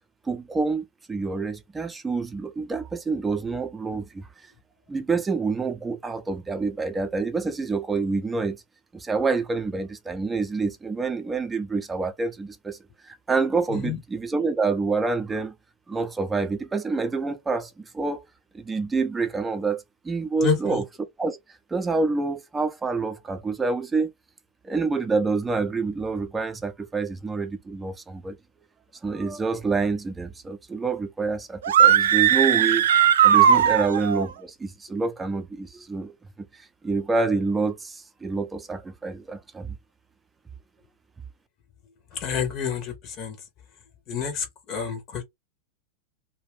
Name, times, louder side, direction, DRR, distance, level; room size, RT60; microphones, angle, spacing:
voice 1, 0.3-4.3 4.9-8.6 8.9-12.8 13.0-15.5 15.9-18.2 18.5-20.8 21.2-21.4 21.7-24.1 24.6-28.4 29.0-32.9 33.2-36.1 36.5-39.7, right 4 dB, 15° right, 0.6 m, -27 dB
voice 2, 20.4-20.8 42.1-43.4 44.1-45.2, left 6 dB, 35° left, 0.9 m, -28 dB
sound 1, 31.6-34.2, right 9 dB, 60° right, 0.3 m, -18 dB
2.5 x 2.4 x 3.3 m
figure-of-eight pair, 90°, 0 cm